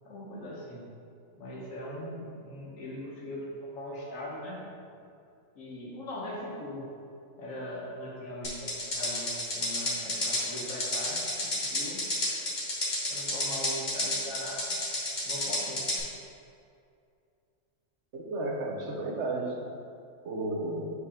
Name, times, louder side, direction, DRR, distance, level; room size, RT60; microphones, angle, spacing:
voice 1, 0.0-0.8 1.3-4.6 5.5-6.9 7.3-12.0 13.1-14.8 15.2-16.0, left 1 dB, 75° left, -3 dB, 1.5 m, -40 dB
sound 1, 8.4-16.0, left 1 dB, 35° left, 1.2 m, -31 dB
voice 2, 18.1-19.5 20.2-20.9, right 2 dB, 65° right, -1 dB, 1.0 m, -33 dB
4.8 x 4.1 x 5.0 m, 2.5 s
omnidirectional pair, 1.4 m